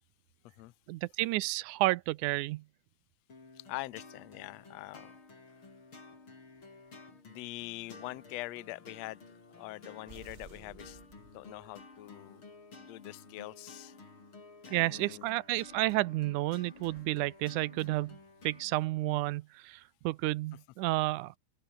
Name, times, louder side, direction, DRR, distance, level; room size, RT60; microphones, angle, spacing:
voice 1, 0.9-2.6 14.7-18.2 18.4-21.3, right 18 dB, 80° right, 2.1 m, -31 dB
sound 1, 3.3-18.7, left 3 dB, 40° left, 6.1 m, -53 dB
voice 2, 3.6-5.1 7.2-9.2 9.5-11.0 11.3-12.4 12.8-13.9 14.7-15.3, left 20 dB, 75° left, 1.7 m, -43 dB
sound 2, 10.1-11.9, right 5 dB, 45° right, 0.8 m, -54 dB
sound 3, 15.5-18.7, right 2 dB, 20° right, 4.4 m, -64 dB
open air
omnidirectional pair, 3.6 m